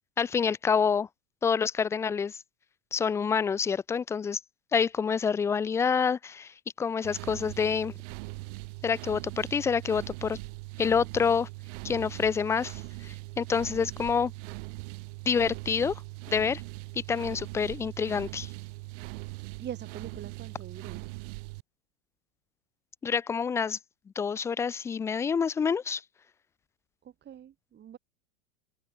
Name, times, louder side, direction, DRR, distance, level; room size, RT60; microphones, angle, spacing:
voice 1, 0.2-1.1 1.4-2.4 2.9-4.4 4.7-7.9 8.8-10.4 10.8-11.5 11.8-14.3 15.3-16.0 16.3-16.6 17.1-18.5 23.0-23.8 24.2-26.0, left 6 dB, 10° left, 0.3 m, -27 dB
sound 1, 7.0-21.6, right 25 dB, 60° right, 6.0 m, -41 dB
voice 2, 19.4-21.1 27.2-28.0, right 9 dB, 25° right, 3.3 m, -43 dB
open air
supercardioid pair, 130°, 41 cm